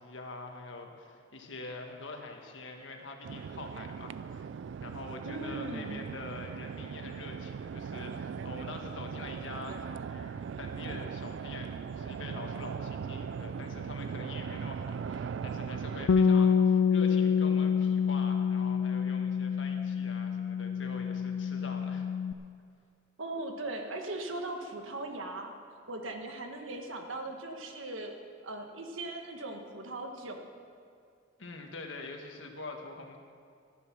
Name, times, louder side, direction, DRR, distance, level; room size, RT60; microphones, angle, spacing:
voice 1, 0.0-4.5 4.8-22.1 31.4-33.2, left 3 dB, 70° left, 3 dB, 1.5 m, -45 dB
sound 1, 3.2-16.1, right 6 dB, 65° right, 0.3 m, -39 dB
voice 2, 5.2-6.0 23.2-28.1 28.4-30.5, right 2 dB, 80° right, 4 dB, 1.5 m, -39 dB
Bass guitar, 16.1-22.3, left 6 dB, 85° left, 0.5 m, -27 dB
13.5 x 10.5 x 6.2 m, 2.3 s
head